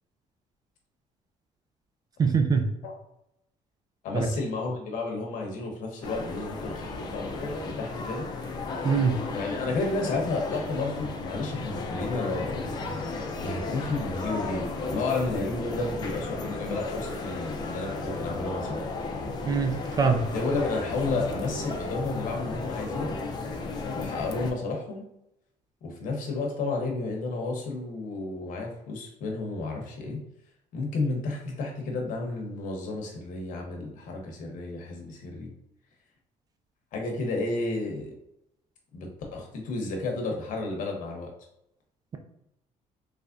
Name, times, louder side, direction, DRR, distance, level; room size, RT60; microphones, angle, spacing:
voice 1, 2.2-2.6 4.1-4.3 8.8-9.2 19.5-20.2, right 5 dB, 30° right, 5 dB, 0.4 m, -23 dB
voice 2, 4.0-8.3 9.3-12.6 13.4-18.8 20.3-23.2 23.9-25.0 25.8-30.2 30.7-35.5 36.9-38.1 38.9-41.3, left 3 dB, 70° left, 1 dB, 0.9 m, -32 dB
sound 1, 6.0-24.5, left 3 dB, 30° left, 0.5 m, -34 dB
3.3 x 3.3 x 2.5 m, 0.83 s
cardioid pair, 165°, 14 cm